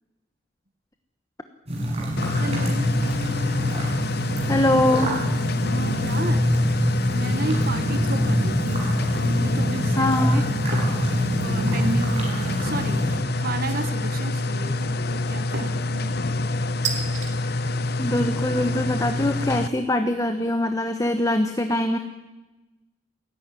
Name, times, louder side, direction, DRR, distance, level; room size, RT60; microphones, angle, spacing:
sound 1, 1.7-13.2, equal, 35° right, 7.7 m, -25 dB
sound 2, 2.2-19.7, left 2 dB, 55° left, 0.8 m, -26 dB
voice 1, 2.4-2.9 5.6-6.6 7.1-8.9 9.2-10.4 11.4-16.1, right 2 dB, 50° right, 9 dB, 1.4 m, -32 dB
voice 2, 4.5-5.1 10.0-10.5 18.0-22.0, left 1 dB, 20° left, 7 dB, 1.1 m, -23 dB
sound 3, 10.7-11.0 11.5-11.9 13.7-14.2 15.5-15.9 16.8-17.3, right 5 dB, 70° right, 3.2 m, -32 dB
28.5 x 11.5 x 9.9 m, 1.1 s
head